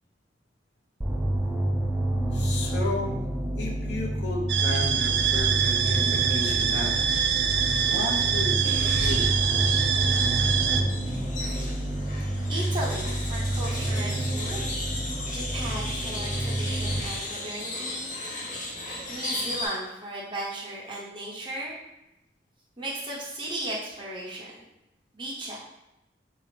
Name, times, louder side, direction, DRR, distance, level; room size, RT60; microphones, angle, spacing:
sound 1, 1.0-17.0, right 1 dB, 10° right, 0.4 m, -29 dB
voice 1, 2.3-3.2 3.6-7.0 7.9-9.3, left 2 dB, 80° left, -1 dB, 0.7 m, -33 dB
sound 2, 4.5-10.8, right 7 dB, 75° right, 0.4 m, -25 dB
sound 3, 8.6-19.7, left 2 dB, 45° left, 0.9 m, -36 dB
voice 2, 12.5-14.7 15.3-18.1 19.1-21.8 22.8-24.5 25.1-25.6, right 1 dB, 30° right, -5 dB, 0.9 m, -36 dB
4.1 x 2.7 x 3.2 m, 0.92 s
head